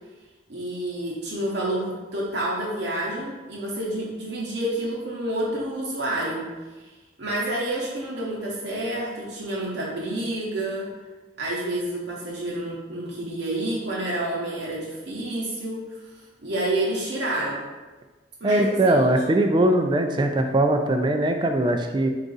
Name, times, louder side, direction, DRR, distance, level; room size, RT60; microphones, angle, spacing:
voice 1, 0.5-6.5 6.8-6.9 7.2-10.9 11.4-17.6 18.4-19.0, right 1 dB, 70° right, -5 dB, 0.8 m, -29 dB
voice 2, 18.4-22.1, right 1 dB, 25° right, 5 dB, 0.3 m, -21 dB
3.9 x 2.4 x 3.9 m, 1.3 s
head